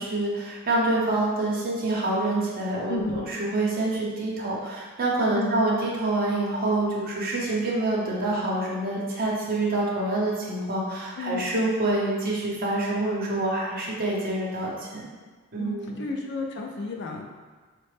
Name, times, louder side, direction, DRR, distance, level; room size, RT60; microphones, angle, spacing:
voice 1, 0.0-15.1 15.5-16.0, right 2 dB, 40° right, -6 dB, 0.8 m, -26 dB
voice 2, 2.9-3.3 5.3-5.7 11.2-11.5 15.6-17.4, left 2 dB, 50° left, 1 dB, 0.4 m, -32 dB
4.0 x 2.1 x 3.2 m, 1.4 s
head